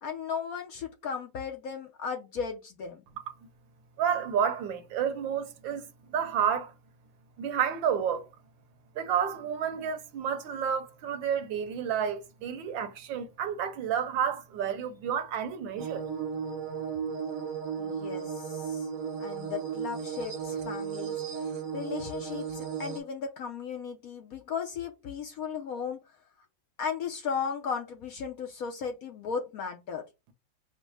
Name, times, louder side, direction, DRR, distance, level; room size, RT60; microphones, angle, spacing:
voice 1, 0.0-3.0 17.8-18.9 19.2-21.2 21.7-26.0 26.8-30.1, left 6 dB, 65° left, 0.9 m, -36 dB
voice 2, 4.0-6.7 7.4-8.3 8.9-16.0, right 8 dB, 80° right, 1.5 m, -30 dB
sound 1, 15.8-23.0, right 7 dB, 55° right, 1.0 m, -35 dB
5.2 x 2.1 x 4.8 m
omnidirectional pair, 2.0 m